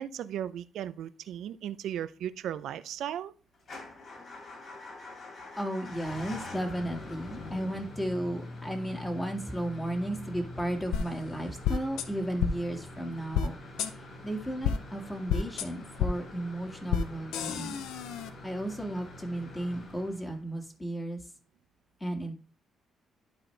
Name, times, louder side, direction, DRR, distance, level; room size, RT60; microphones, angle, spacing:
voice 1, 0.0-3.3, right 10 dB, 80° right, 14 dB, 0.5 m, -36 dB
Motor vehicle (road) / Engine starting / Idling, 3.6-20.6, left 2 dB, 50° left, 3.6 m, -45 dB
voice 2, 5.6-13.6 14.2-17.8 18.4-21.2 22.0-22.3, right 1 dB, 15° left, 2 dB, 1.9 m, -34 dB
sound 1, 10.9-11.0 11.6-12.0 12.4-12.5 13.3-13.5 13.8-13.9 14.6-14.8 15.3-15.6 16.0-16.1 16.9-17.0 17.3-18.3, left 7 dB, 90° left, 0.7 m, -28 dB
11.5 x 4.2 x 3.3 m, 0.37 s
cardioid pair, 90°, 0 cm